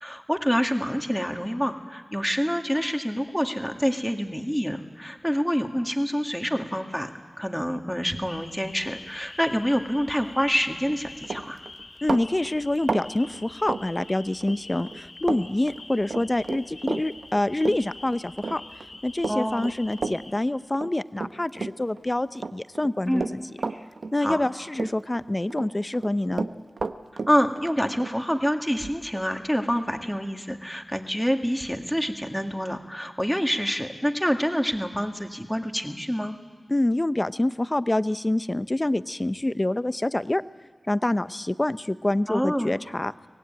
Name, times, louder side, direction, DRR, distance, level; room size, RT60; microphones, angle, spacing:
voice 1, 0.0-7.1 7.4-11.6 19.3-19.7 23.1-23.3 23.7-23.8 24.2-24.4 27.3-36.3 42.3-42.7, equal, ahead, 4 dB, 1.9 m, -27 dB
sound 1, 8.2-20.3, left 2 dB, 75° left, 2.1 m, -46 dB
Run, 10.8-10.9 11.2-14.6 14.9-15.4 15.7-22.0 22.3-24.5 24.7-25.7 25.9-29.3, right 4 dB, 85° right, 0.8 m, -32 dB
voice 2, 12.0-18.6 19.0-23.4 24.1-26.5 36.7-40.4 40.9-43.1, left 1 dB, 30° left, 14 dB, 0.7 m, -26 dB
23.5 x 18.0 x 9.1 m, 1.5 s
wide cardioid pair, 55°, 0 cm